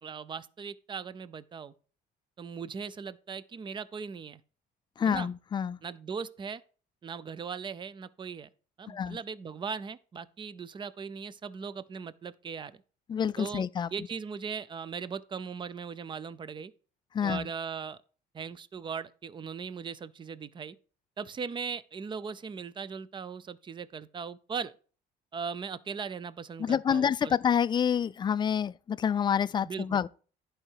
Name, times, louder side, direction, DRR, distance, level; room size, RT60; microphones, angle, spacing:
voice 1, 0.0-1.7 2.4-4.4 5.1-5.3 5.8-6.6 7.0-8.5 8.8-12.8 13.4-13.6 13.9-16.7 17.2-18.0 18.3-20.8 21.2-24.7 25.3-27.4 29.6-30.0, right 6 dB, 30° right, 0.5 m, -39 dB
voice 2, 5.0-5.8 8.9-9.2 13.1-13.9 17.1-17.5 26.6-30.1, left 8 dB, 25° left, 0.3 m, -28 dB
11.0 x 4.9 x 4.6 m
cardioid pair, 110°, 17 cm